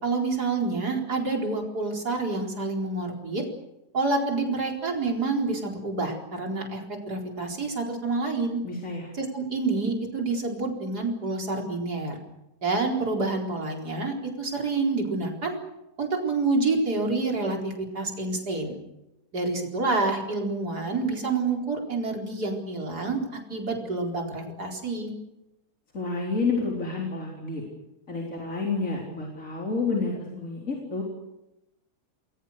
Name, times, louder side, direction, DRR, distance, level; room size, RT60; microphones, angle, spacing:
voice 1, 0.0-3.4 3.9-8.6 9.1-12.2 12.6-15.6 16.0-18.8 19.3-25.1, right 3 dB, 75° right, 1 dB, 4.9 m, -28 dB
voice 2, 8.6-9.1 25.9-27.6 28.1-31.0, left 3 dB, 50° left, -2 dB, 4.5 m, -29 dB
29.0 x 21.5 x 6.7 m, 0.95 s
omnidirectional pair, 1.7 m